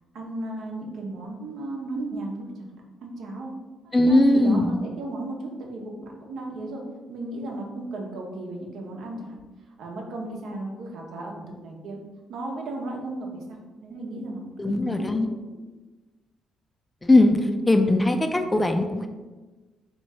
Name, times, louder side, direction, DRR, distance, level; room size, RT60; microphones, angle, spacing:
voice 1, 0.1-2.7 3.0-3.5 3.8-6.8 7.1-9.4 9.8-12.0 12.3-15.2, right 2 dB, 75° right, 0 dB, 0.9 m, -35 dB
voice 2, 3.9-4.8 14.6-15.3 17.0-19.1, left 1 dB, 15° left, 6 dB, 0.4 m, -20 dB
3.6 x 3.0 x 4.2 m, 1.2 s
cardioid pair, 90°, 0 cm